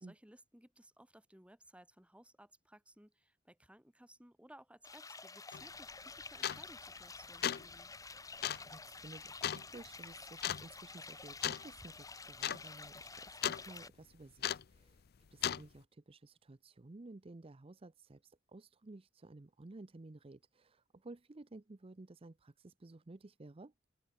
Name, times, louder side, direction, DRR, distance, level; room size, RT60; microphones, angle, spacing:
voice 1, 0.1-7.9, right 1 dB, 5° right, 4.7 m, -60 dB
sound 1, 4.8-13.9, left 4 dB, 15° left, 1.9 m, -50 dB
sound 2, 5.5-5.6 6.4-6.8 7.2-7.7 8.4-8.7 9.4-9.6 10.4-10.7 11.4-11.7 12.0-12.1 12.3-12.6 12.9-13.6 14.4-14.8 15.4-15.6, left 10 dB, 50° left, 0.5 m, -36 dB
voice 2, 8.6-15.0 15.3-23.7, right 2 dB, 30° right, 0.6 m, -54 dB
open air
head